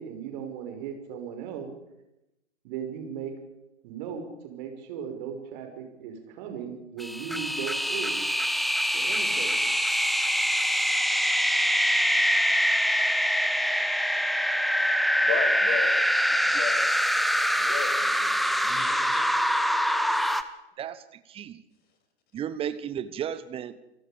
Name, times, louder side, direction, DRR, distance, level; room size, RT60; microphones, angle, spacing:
voice 1, 0.0-1.7 2.6-3.3 3.8-8.3 8.9-9.7, right 7 dB, 40° right, 4 dB, 5.6 m, -37 dB
sound 1, 7.0-20.4, equal, ahead, 0.8 m, -24 dB
voice 2, 15.2-16.0 16.6-16.9 17.5-19.4, left 7 dB, 25° left, 4 dB, 6.4 m, -35 dB
voice 3, 20.8-21.6 22.3-23.8, right 9 dB, 15° right, 14 dB, 1.1 m, -34 dB
28.5 x 19.5 x 5.2 m, 0.90 s
figure-of-eight pair, 105°, 34 cm